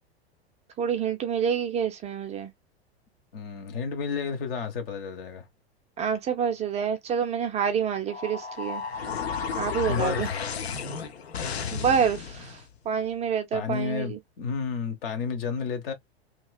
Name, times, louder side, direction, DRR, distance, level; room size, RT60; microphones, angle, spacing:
voice 1, 0.8-2.5 6.0-8.8 9.6-10.3 11.7-12.6 12.9-14.2, right 7 dB, 20° right, 0.4 m, -27 dB
voice 2, 3.3-5.5 9.9-10.4 13.5-15.9, left 6 dB, 60° left, 1.0 m, -31 dB
sound 1, 8.1-12.6, left 6 dB, 75° left, 0.6 m, -33 dB
2.9 x 2.3 x 2.3 m
figure-of-eight pair, 90°, 32 cm